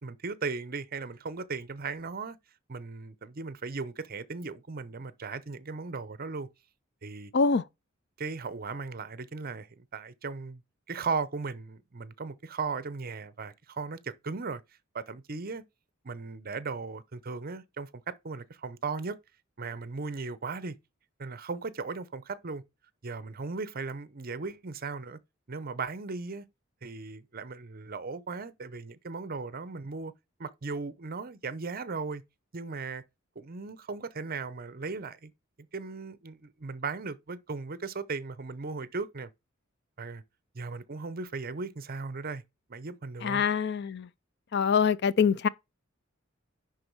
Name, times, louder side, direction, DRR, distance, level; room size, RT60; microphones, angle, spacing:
voice 1, 0.0-2.4 2.7-6.5 7.0-7.3 8.2-10.6 10.9-14.6 14.9-15.6 16.0-19.2 19.6-20.8 21.2-22.6 23.0-25.2 25.5-26.5 26.8-30.1 30.4-32.2 32.5-33.0 33.4-35.3 35.7-39.3 40.0-40.2 40.5-42.4 42.7-43.4, right 4 dB, 45° right, 0.7 m, -37 dB
voice 2, 7.3-7.6 43.2-44.1 44.5-45.5, left 6 dB, 55° left, 0.5 m, -24 dB
10.5 x 3.9 x 4.6 m
head